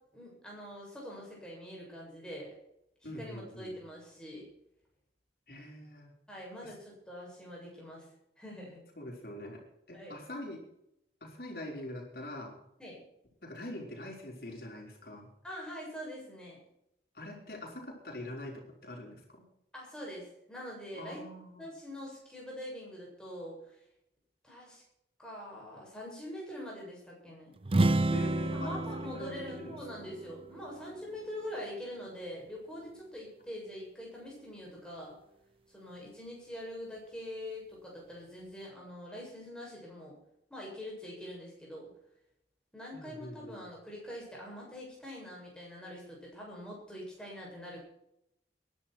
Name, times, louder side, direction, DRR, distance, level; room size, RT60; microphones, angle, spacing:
voice 1, 0.1-2.5 3.0-4.5 6.3-8.1 8.4-8.8 9.9-10.1 12.8-13.0 15.4-16.6 19.7-21.2 21.6-23.8 24.4-24.8 25.2-27.5 28.5-35.1 35.7-40.1 40.5-41.9 42.7-47.8, equal, 5° left, -3 dB, 7.3 m, -44 dB
voice 2, 3.0-3.7 5.5-6.1 6.6-6.7 9.0-9.6 9.9-10.6 11.2-12.5 13.4-15.3 17.1-19.4 21.0-21.7 28.1-29.8 42.9-43.6, left 1 dB, 55° left, 0 dB, 5.2 m, -44 dB
sound 1, 27.6-31.4, right 2 dB, 30° right, 0.6 m, -31 dB
22.0 x 11.5 x 4.6 m, 0.80 s
head